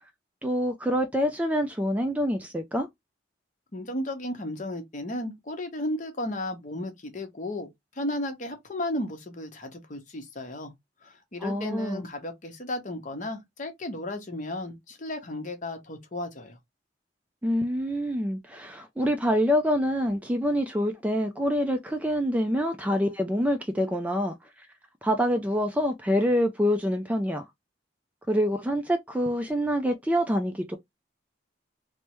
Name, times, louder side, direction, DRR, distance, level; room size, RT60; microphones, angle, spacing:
voice 1, 0.4-2.9 11.4-12.1 17.4-24.7 25.0-27.4 28.3-30.8, equal, 10° right, 0.3 m, -26 dB
voice 2, 3.7-7.7 7.9-10.7 11.0-16.6, left 1 dB, 45° left, 0.8 m, -34 dB
3.3 x 2.1 x 2.9 m
head